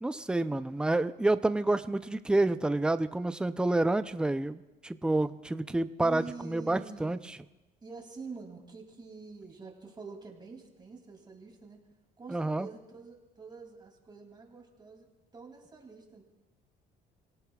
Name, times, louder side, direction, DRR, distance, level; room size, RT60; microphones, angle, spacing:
voice 1, 0.0-7.2 12.3-12.7, right 2 dB, 5° right, 11 dB, 0.5 m, -28 dB
voice 2, 5.0-5.4 6.0-7.2 7.8-11.8 12.2-16.2, right 4 dB, 25° right, 2 dB, 2.7 m, -47 dB
29.5 x 17.5 x 2.4 m, 1.1 s
cardioid pair, 110°, 17 cm